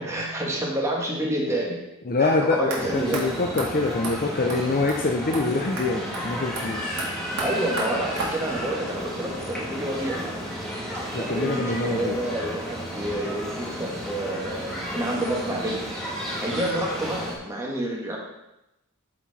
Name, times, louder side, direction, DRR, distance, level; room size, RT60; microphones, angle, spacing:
voice 1, 0.0-1.8 2.2-3.2 3.6-3.7 7.4-10.2 11.2-15.8 16.4-18.2, right 1 dB, 15° right, -3 dB, 1.7 m, -29 dB
voice 2, 2.1-7.0 11.1-12.2, left 3 dB, 40° left, 1 dB, 0.6 m, -25 dB
sound 1, 2.7-2.8 3.1-3.2 3.6-3.7 4.0-4.2 4.5-4.6 4.9-5.0 5.3-5.4 5.8-5.9 6.1-6.2 6.6-8.7, right 3 dB, 80° right, 2.3 m, -33 dB
sound 2, 2.8-17.3, equal, ahead, 1.7 m, -33 dB
13.0 x 4.4 x 4.1 m, 0.91 s
head